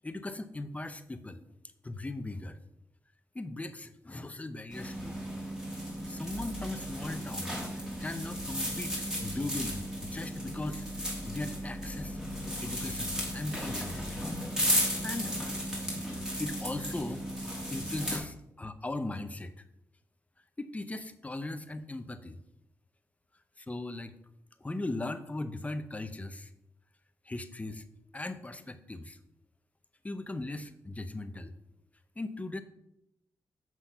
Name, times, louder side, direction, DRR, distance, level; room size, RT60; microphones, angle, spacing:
voice 1, 0.0-1.4 1.8-2.6 3.3-5.2 6.1-14.0 15.0-15.4 16.2-19.5 20.6-22.4 23.6-24.2 24.6-26.5 27.2-27.8 28.1-29.2 30.0-31.5 32.2-32.6, left 2 dB, 20° left, 10 dB, 0.8 m, -39 dB
sound 1, 4.7-18.2, equal, 10° right, 3.1 m, -35 dB
7.7 x 6.3 x 5.5 m, 0.80 s
cardioid pair, 85°, 7 cm